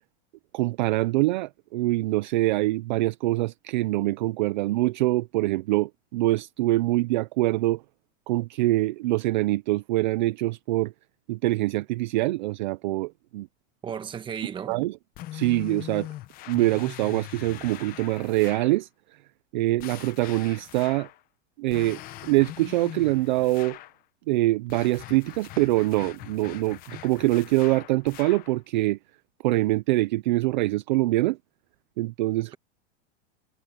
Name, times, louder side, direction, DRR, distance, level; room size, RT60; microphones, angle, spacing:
voice 1, 0.5-7.8 8.3-10.9 11.3-13.5 14.7-14.9 15.3-16.1 16.5-18.9 19.5-21.1 21.6-23.8 24.3-29.0 29.4-31.4 32.0-32.5, right 18 dB, 40° right, 0.4 m, -24 dB
voice 2, 13.8-14.8, right 7 dB, 15° right, 1.2 m, -34 dB
sound 1, 15.1-18.8 19.8-21.2 21.7-24.0 24.7-28.6, left 15 dB, 25° left, 0.9 m, -42 dB
supercardioid pair, 170°, 37 cm